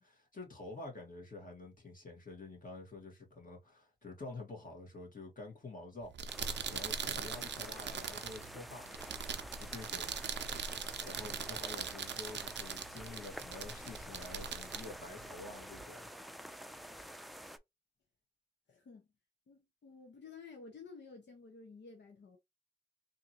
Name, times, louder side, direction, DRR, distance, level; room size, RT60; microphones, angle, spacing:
voice 1, 0.0-6.1 6.5-8.9 9.6-10.2 11.0-16.1, left 2 dB, 50° left, 1.9 m, -48 dB
sound 1, 6.0-15.8, right 6 dB, 90° right, 0.5 m, -41 dB
sound 2, 6.3-17.6, equal, ahead, 0.4 m, -49 dB
voice 2, 18.7-19.1 19.5-22.4, left 4 dB, 85° left, 0.8 m, -53 dB
3.6 x 2.7 x 2.9 m
cardioid pair, 55°, 18 cm